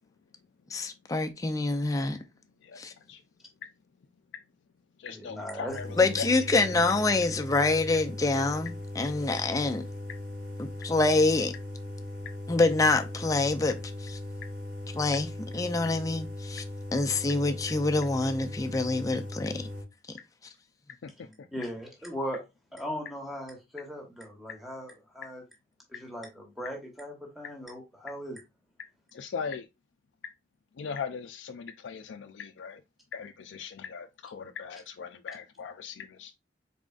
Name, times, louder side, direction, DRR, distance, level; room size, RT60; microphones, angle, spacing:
voice 1, 0.7-2.2 2.8-2.9 6.0-9.8 10.6-11.5 12.5-13.7 14.9-15.3 15.5-16.6 16.9-19.6 20.1-20.2, left 3 dB, 20° left, 0.4 m, -26 dB
voice 2, 2.6-3.2 5.0-6.7 21.0-21.6 29.1-29.7 30.7-32.8 33.1-36.3, left 6 dB, 85° left, 0.4 m, -40 dB
voice 3, 5.1-5.7 21.5-22.4 22.7-25.4 25.9-28.4, equal, ahead, 1.0 m, -38 dB
sound 1, 5.7-19.8, left 1 dB, 60° right, 1.6 m, -39 dB
4.2 x 3.7 x 2.3 m
head